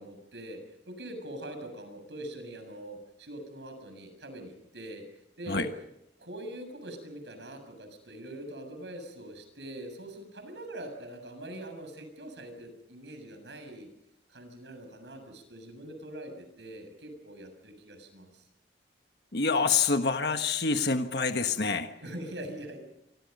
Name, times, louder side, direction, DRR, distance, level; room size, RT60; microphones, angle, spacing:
voice 1, 0.0-5.1 5.4-5.7 6.2-13.9 14.3-18.4 21.2-21.5 22.0-22.8, right 1 dB, 80° right, 7 dB, 7.2 m, -43 dB
voice 2, 19.3-21.9, left 4 dB, 65° left, 6 dB, 1.4 m, -26 dB
28.5 x 24.5 x 5.5 m, 0.79 s
head